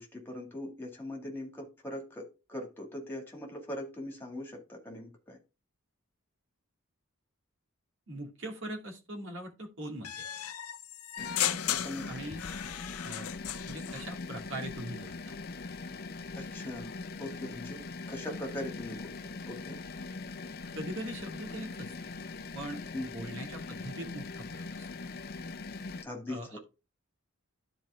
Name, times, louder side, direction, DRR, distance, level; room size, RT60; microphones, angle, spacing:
voice 1, 0.0-5.4 11.6-12.1 16.4-16.9 17.2-17.8 18.1-19.8 22.9-23.3 26.0-26.6, left 1 dB, 10° left, 1 dB, 2.2 m, -41 dB
voice 2, 8.1-10.2 12.1-12.4 13.0-13.3 13.7-15.4 20.8-22.1 22.5-22.8 23.1-24.9 26.3-26.6, right 1 dB, 55° right, 3 dB, 2.4 m, -41 dB
sound 1, 10.0-14.1, left 11 dB, 90° left, 0.7 m, -35 dB
sound 2, 11.2-26.0, left 3 dB, 45° left, 0.6 m, -41 dB
12.5 x 4.4 x 3.6 m, 0.29 s
head